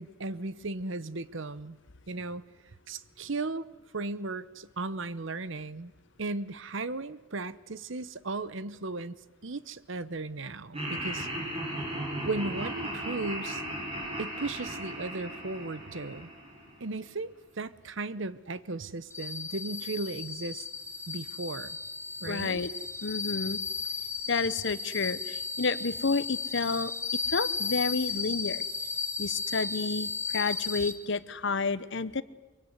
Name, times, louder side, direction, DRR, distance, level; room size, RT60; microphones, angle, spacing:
voice 1, 0.0-1.8 2.1-2.4 2.9-3.7 3.9-5.9 6.2-9.2 9.4-11.3 12.2-13.6 14.2-16.3 16.8-20.7 21.1-21.8 22.2-22.6, right 3 dB, 60° right, 16 dB, 0.9 m, -36 dB
Laughter, 10.7-16.9, right 1 dB, 25° right, 7.5 m, -36 dB
sound 1, 19.1-30.9, left 5 dB, 10° left, 1.5 m, -34 dB
voice 2, 22.3-22.7 23.0-23.6 24.3-26.9 27.3-28.6 29.2-32.2, left 4 dB, 55° left, 16 dB, 0.9 m, -30 dB
23.5 x 23.0 x 9.6 m, 1.1 s
head